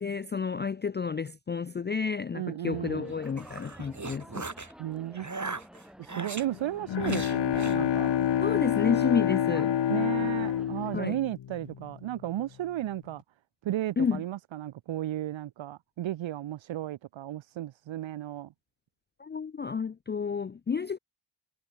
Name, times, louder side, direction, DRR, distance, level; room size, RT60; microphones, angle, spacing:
voice 1, 0.0-4.7 8.4-9.7 10.9-11.2 14.0-14.2 19.2-21.0, left 6 dB, 25° left, 0.4 m, -30 dB
voice 2, 2.3-3.1 4.8-5.3 6.0-8.1 9.9-13.2 13.6-18.5, right 13 dB, 85° right, 0.7 m, -34 dB
sound 1, 2.7-11.1, equal, ahead, 6.2 m, -51 dB
sound 2, 3.1-4.7 5.1-6.5 7.0-7.8, right 3 dB, 40° right, 5.4 m, -39 dB
Bowed string instrument, 6.5-12.0, left 10 dB, 65° left, 0.9 m, -28 dB
cardioid pair, 45°, 45 cm